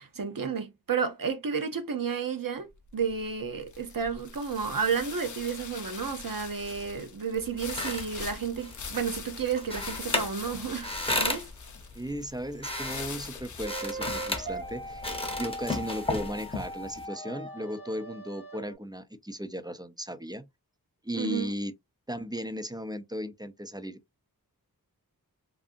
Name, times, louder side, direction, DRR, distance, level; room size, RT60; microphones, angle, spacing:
voice 1, 0.0-11.5 21.1-21.5, right 6 dB, 65° right, 0.7 m, -32 dB
sound 1, 2.7-16.0, left 5 dB, 55° left, 0.5 m, -43 dB
sound 2, 7.4-17.0, left 2 dB, 15° left, 0.7 m, -35 dB
voice 2, 11.9-15.1 15.4-20.5 21.0-21.7 22.1-24.0, equal, 10° right, 0.3 m, -36 dB
sound 3, 13.6-18.7, right 1 dB, 90° right, 1.0 m, -40 dB
2.6 x 2.5 x 2.4 m
wide cardioid pair, 50°, 37 cm